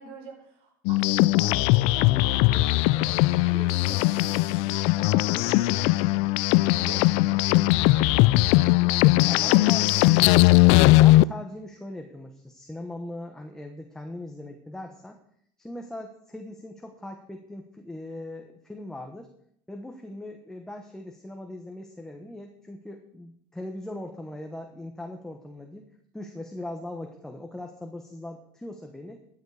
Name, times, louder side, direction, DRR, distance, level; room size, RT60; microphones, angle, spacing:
voice 1, 0.0-1.5 1.9-3.1 3.4-6.3 6.8-7.0 7.4-7.8 9.3-10.5, right 4 dB, 65° right, 2 dB, 5.1 m, -44 dB
sound 1, 0.9-11.2, left 19 dB, 75° left, 0.4 m, -20 dB
voice 2, 9.3-9.8 11.0-15.2 15.6-19.3 19.7-25.9 26.1-29.2, left 1 dB, 5° left, 3 dB, 1.3 m, -40 dB
15.5 x 9.6 x 5.1 m, 0.68 s
cardioid pair, 140°, 11 cm